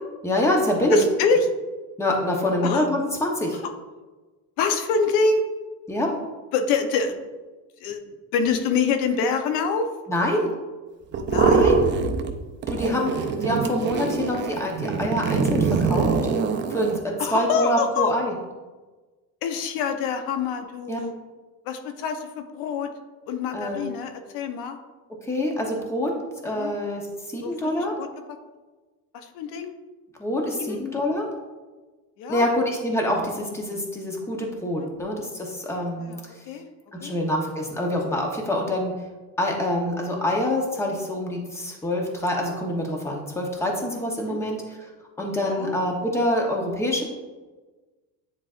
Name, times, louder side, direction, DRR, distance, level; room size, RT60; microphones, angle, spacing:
voice 1, 0.2-1.1 2.0-3.6 5.9-6.1 10.1-10.5 11.5-11.9 12.7-16.1 16.7-18.3 20.9-21.0 23.5-23.9 25.2-26.1 26.4-28.0 30.2-31.3 32.3-36.4 36.9-38.9 39.4-44.9 45.2-47.0, left 1 dB, 10° left, 0 dB, 0.8 m, -25 dB
voice 2, 0.9-1.4 2.6-2.9 4.6-5.4 6.5-7.2 7.8-8.0 8.3-9.9 11.3-11.8 17.2-18.1 19.4-21.1 21.7-22.9 23.3-24.8 26.5-26.7 27.4-27.5 28.0-28.1 29.3-29.7 30.6-30.8 32.2-32.5 34.8-34.9 36.0-36.2 36.5-36.7 37.0-37.2 44.2-44.4 45.4-45.8, left 5 dB, 90° left, 7 dB, 0.8 m, -25 dB
sound 1, 11.1-12.4 12.6-17.0, right 5 dB, 35° right, 0.4 m, -23 dB
9.6 x 4.1 x 2.4 m, 1.2 s
cardioid pair, 155°, 35 cm